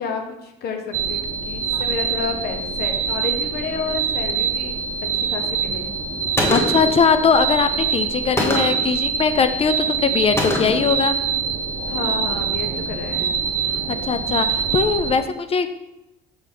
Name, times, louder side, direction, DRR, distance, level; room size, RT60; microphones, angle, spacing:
voice 1, 0.0-4.8 5.1-5.9 11.9-13.3, left 5 dB, 70° left, 4 dB, 1.0 m, -30 dB
sound 1, 0.9-15.2, right 6 dB, 55° right, 0.7 m, -25 dB
Gunshot gunfire, 6.4-7.0 8.4-8.9 10.4-10.9, left 1 dB, 15° left, 1.1 m, -23 dB
voice 2, 6.5-11.2 14.0-15.7, left 5 dB, 35° left, 10 dB, 0.4 m, -20 dB
6.2 x 3.4 x 5.2 m, 0.94 s
cardioid pair, 110°, 17 cm